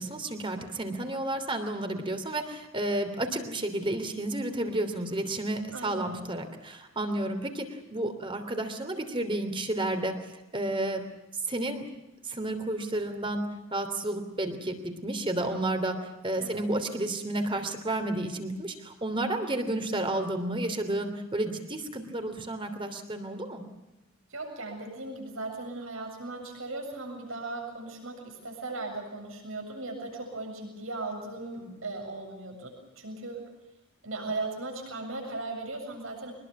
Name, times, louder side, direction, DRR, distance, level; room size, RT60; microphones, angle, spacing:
voice 1, 0.0-10.2 10.5-11.0 11.5-11.9 12.2-23.6 31.6-31.7, right 1 dB, 25° right, 7 dB, 3.1 m, -31 dB
voice 2, 5.7-6.2 16.4-16.7 24.3-33.4 34.0-36.3, right 2 dB, 70° right, 1 dB, 7.6 m, -37 dB
24.0 x 21.0 x 7.3 m, 0.95 s
head